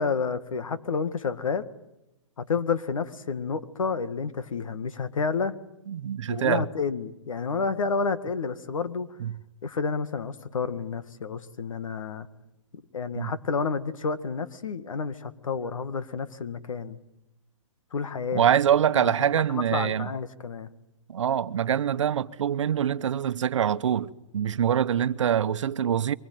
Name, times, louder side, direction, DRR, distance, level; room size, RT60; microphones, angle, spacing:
voice 1, 0.0-1.7 2.4-5.5 6.3-9.1 9.6-12.3 12.7-17.0 17.9-18.4 19.0-20.7, left 5 dB, 85° left, 1.8 m, -30 dB
voice 2, 5.9-6.7 9.2-9.4 13.1-13.3 18.3-20.1 21.1-26.2, right 9 dB, 70° right, 1.0 m, -25 dB
23.5 x 20.5 x 9.4 m
hypercardioid pair, 155°, 17 cm